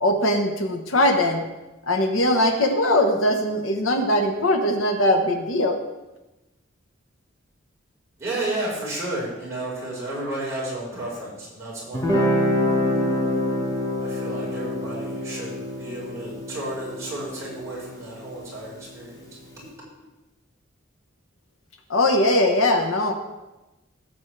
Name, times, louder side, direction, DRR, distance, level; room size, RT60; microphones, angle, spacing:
voice 1, 0.0-1.4 1.8-5.8 21.9-23.1, left 1 dB, 85° left, 4 dB, 1.2 m, -21 dB
voice 2, 8.2-12.3 13.2-13.4 14.0-19.2 19.6-19.7, right 1 dB, 15° right, -8 dB, 4.5 m, -32 dB
Guitar, 11.9-19.1, left 1 dB, 15° left, 1.2 m, -26 dB
17.0 x 7.4 x 3.3 m, 1.0 s
head